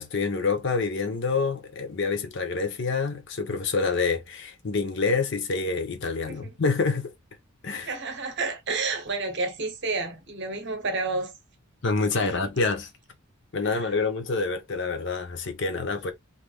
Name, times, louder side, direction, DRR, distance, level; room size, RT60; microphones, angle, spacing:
voice 1, 0.0-7.1 7.6-7.9 11.8-12.9 13.5-16.1, left 4 dB, 55° left, 0.7 m, -27 dB
voice 2, 7.8-11.3 12.3-12.4 13.7-13.9, right 3 dB, 50° right, 0.8 m, -30 dB
3.3 x 2.5 x 2.3 m
head